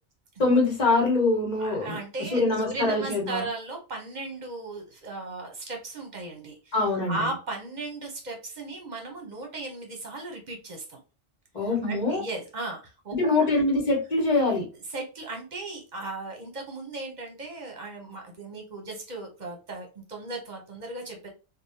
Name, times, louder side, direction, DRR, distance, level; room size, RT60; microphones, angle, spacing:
voice 1, 0.4-2.0 2.3-3.5 6.7-7.2 11.5-12.2 13.1-14.6, left 2 dB, 35° left, -1 dB, 1.3 m, -24 dB
voice 2, 1.6-6.8 7.1-11.0 11.8-13.5 14.9-21.3, right 2 dB, 40° right, 2 dB, 1.0 m, -36 dB
3.3 x 2.4 x 2.7 m, 0.32 s
omnidirectional pair, 1.2 m